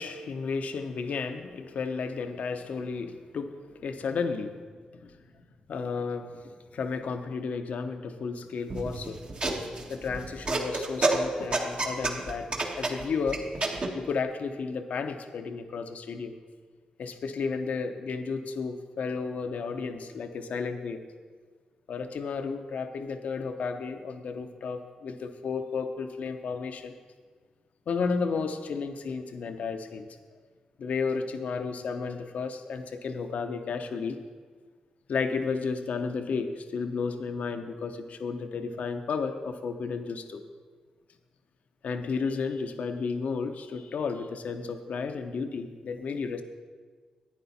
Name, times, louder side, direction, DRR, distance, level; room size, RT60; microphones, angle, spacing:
voice 1, 0.0-4.6 4.9-5.2 5.7-9.2 9.9-16.3 17.0-21.0 21.9-26.9 27.9-30.1 30.8-34.2 35.1-40.4 41.8-46.4, left 5 dB, 70° left, 7 dB, 0.8 m, -33 dB
sound 1, 8.7-13.9, right 2 dB, 50° right, 1.5 m, -29 dB
11.0 x 9.2 x 4.2 m, 1.5 s
supercardioid pair, 50°, 3 cm